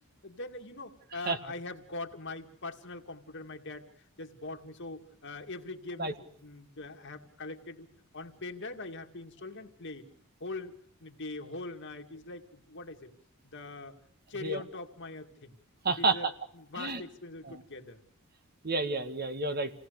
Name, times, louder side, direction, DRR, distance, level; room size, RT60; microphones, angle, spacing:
voice 1, 0.2-3.9 4.2-7.9 8.1-10.1 10.4-10.7 11.0-13.1 13.4-14.0 14.3-15.6 15.9-16.3 16.5-18.0, left 2 dB, 55° left, 4 dB, 2.3 m, -42 dB
voice 2, 15.8-16.3 16.8-17.0 17.4-17.6 18.6-19.7, right 3 dB, 45° right, 8 dB, 1.7 m, -30 dB
28.0 x 18.0 x 6.6 m, 0.65 s
head